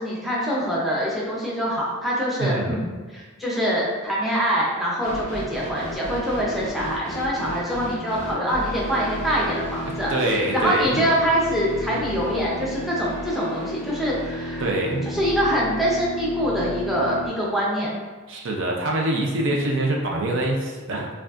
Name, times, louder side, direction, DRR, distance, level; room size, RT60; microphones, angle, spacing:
voice 1, 0.0-14.6 15.1-17.9, equal, ahead, -6 dB, 0.6 m, -24 dB
voice 2, 2.4-2.8 10.1-11.1 14.6-15.1 18.3-21.1, right 2 dB, 60° right, 0 dB, 0.5 m, -24 dB
sound 1, 5.0-17.3, equal, 35° right, 1.0 m, -33 dB
4.9 x 2.3 x 2.5 m, 1.3 s
head